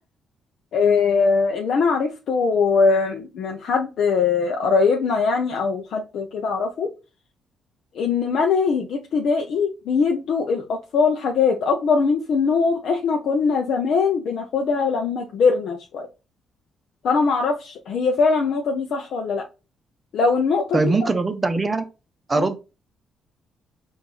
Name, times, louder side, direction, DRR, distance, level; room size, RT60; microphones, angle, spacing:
voice 1, 0.7-6.9 7.9-16.1 17.0-19.4 20.1-20.9 22.3-22.5, left 5 dB, 70° left, 2 dB, 0.7 m, -21 dB
voice 2, 20.7-21.8 22.3-22.6, right 3 dB, 25° right, 8 dB, 0.7 m, -21 dB
4.6 x 2.7 x 3.7 m, 0.30 s
cardioid pair, 90°, 0 cm